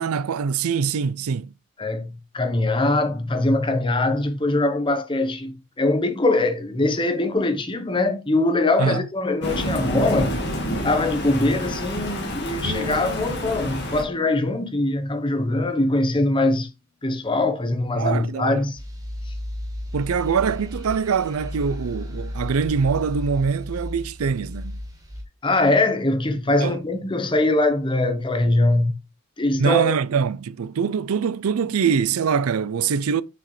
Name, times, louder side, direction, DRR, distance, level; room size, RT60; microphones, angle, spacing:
voice 1, 0.0-1.5 8.8-9.1 18.0-18.6 19.9-24.8 26.6-26.8 29.6-33.2, right 6 dB, 90° right, 0.5 m, -23 dB
voice 2, 1.8-10.4 10.8-16.7 17.0-18.8 25.4-28.9 29.4-30.0, left 2 dB, 25° left, 0.8 m, -22 dB
Thunder, 9.4-14.0, equal, 50° left, 1.8 m, -28 dB
sound 1, 12.6-16.4, left 1 dB, 50° right, 2.1 m, -37 dB
sound 2, 18.7-25.2, left 1 dB, 15° right, 1.5 m, -33 dB
6.7 x 6.2 x 3.2 m
head